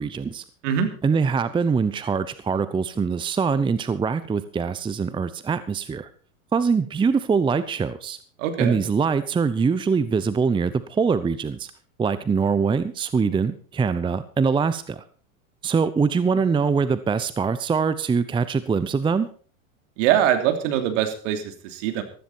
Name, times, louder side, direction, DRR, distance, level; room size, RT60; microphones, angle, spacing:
voice 1, 0.0-0.4 1.0-6.1 6.5-8.2 8.6-11.7 12.0-15.0 15.6-19.3, right 5 dB, 10° right, 14 dB, 0.7 m, -23 dB
voice 2, 8.4-8.8 20.0-22.0, right 10 dB, 60° right, 6 dB, 3.2 m, -23 dB
15.0 x 13.5 x 4.4 m, 0.42 s
hypercardioid pair, 95°, 42 cm